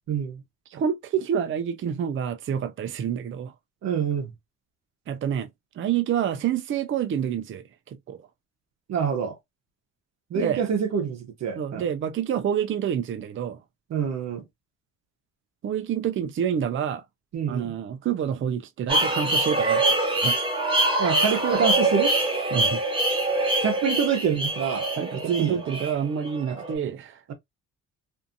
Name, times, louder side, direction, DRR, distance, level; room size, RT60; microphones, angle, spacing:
voice 1, 0.1-0.4 3.8-4.3 8.9-9.4 10.3-11.8 13.9-14.4 17.3-17.7 21.0-22.1 23.6-24.9 25.1-25.6, right 7 dB, 60° right, 0.8 m, -26 dB
voice 2, 0.7-3.5 5.1-5.5 5.8-8.2 10.3-10.6 11.5-13.6 15.6-17.0 17.5-19.9 20.2-20.4 22.5-22.8 25.0-27.2, right 8 dB, 45° right, 0.5 m, -28 dB
sound 1, 18.9-26.7, right 2 dB, 15° right, 1.2 m, -24 dB
2.6 x 2.4 x 2.5 m
cardioid pair, 90°, 30 cm